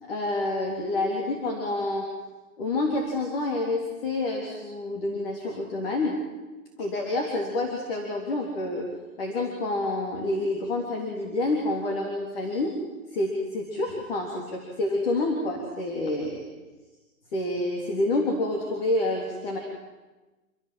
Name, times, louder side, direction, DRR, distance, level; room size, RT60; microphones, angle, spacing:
voice 1, 0.0-2.1 2.6-6.2 6.8-8.9 9.2-12.8 13.1-16.4 17.3-19.6, left 2 dB, 40° left, 0 dB, 3.6 m, -28 dB
27.0 x 16.5 x 7.7 m, 1.2 s
hypercardioid pair, 170°, 43 cm